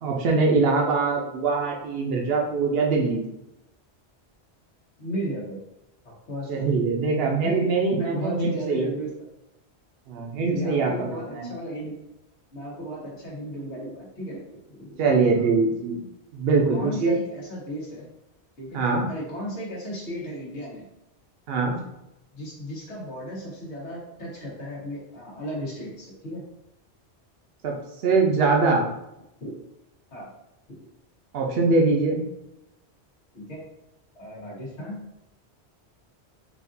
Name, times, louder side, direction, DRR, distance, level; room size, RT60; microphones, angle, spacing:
voice 1, 0.0-3.2 6.5-8.9 10.1-10.9 11.3-11.5 15.0-16.0 16.3-17.2 18.7-19.1 21.5-21.8 27.6-27.7 28.0-28.9 31.3-32.2, right 4 dB, 65° right, 0 dB, 0.9 m, -22 dB
voice 2, 5.0-5.6 6.0-6.5 7.4-9.1 10.5-12.0 12.5-14.4 14.7-15.0 15.2-15.5 16.7-18.1 18.6-20.9 22.3-26.4 29.4-29.6 30.1-30.3 30.7-30.8 33.3-33.6 34.2-35.0, equal, 85° left, -5 dB, 1.6 m, -35 dB
5.0 x 2.4 x 2.6 m, 0.88 s
omnidirectional pair, 1.1 m